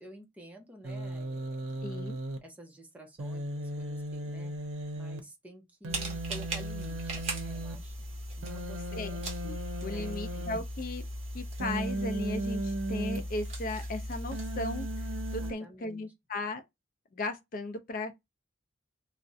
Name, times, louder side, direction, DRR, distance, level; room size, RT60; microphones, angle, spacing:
voice 1, 0.0-1.9 2.4-4.5 5.0-8.1 8.4-9.2 9.8-10.5 15.4-16.1, right 1 dB, 5° right, 0.6 m, -51 dB
Human voice, 0.8-2.4 3.2-5.2 5.8-7.7 8.4-10.6 11.6-13.2 14.3-15.5, right 1 dB, 90° right, 0.6 m, -36 dB
voice 2, 1.8-2.2 8.9-11.0 11.3-14.9 15.3-16.6 17.1-18.2, left 2 dB, 45° left, 0.4 m, -37 dB
sound 1, 5.9-15.5, equal, 35° right, 0.8 m, -38 dB
2.4 x 2.0 x 2.6 m
head